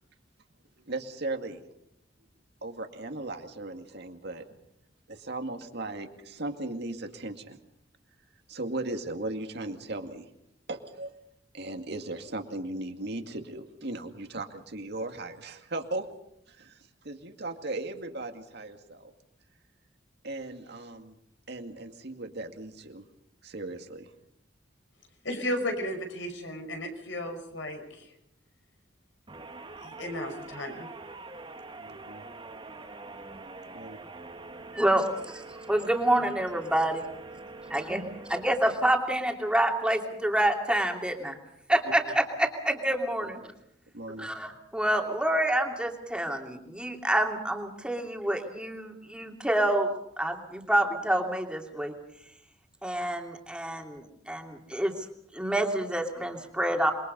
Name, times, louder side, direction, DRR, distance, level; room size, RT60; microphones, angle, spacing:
voice 1, 0.9-1.6 2.6-4.5 5.1-7.6 8.5-10.3 10.7-11.1 11.5-16.1 16.5-19.1 20.2-21.1 21.5-23.0 23.4-24.1 31.8-32.2 33.7-34.0 43.9-44.3, right 2 dB, 65° right, 5 dB, 2.2 m, -37 dB
voice 2, 25.2-28.1 29.8-30.9, left 1 dB, 80° left, 5 dB, 5.5 m, -34 dB
sound 1, 29.3-39.6, right 3 dB, 30° right, 1.6 m, -45 dB
voice 3, 34.7-35.1 35.3-37.0 37.7-41.4 41.7-43.5 44.2-51.9 52.8-55.1 55.3-56.9, right 1 dB, 5° right, 2 dB, 2.9 m, -27 dB
28.0 x 22.0 x 5.4 m, 0.76 s
head